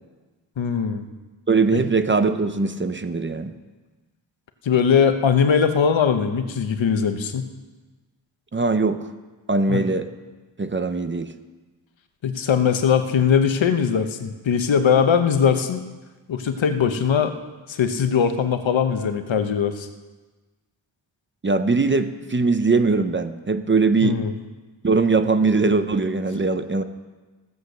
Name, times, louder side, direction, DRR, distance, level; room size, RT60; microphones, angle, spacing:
voice 1, 0.6-1.1 1.7-1.8 4.6-7.4 9.7-9.8 12.2-15.8 16.3-17.3 17.7-19.9 24.0-24.3, left 7 dB, 85° left, 8 dB, 1.1 m, -20 dB
voice 2, 1.5-3.5 8.5-9.1 9.5-10.1 10.6-11.3 21.4-24.2 24.8-26.8, right 3 dB, 25° right, 10 dB, 0.6 m, -21 dB
16.0 x 8.1 x 6.7 m, 1.3 s
wide cardioid pair, 130°, 45 cm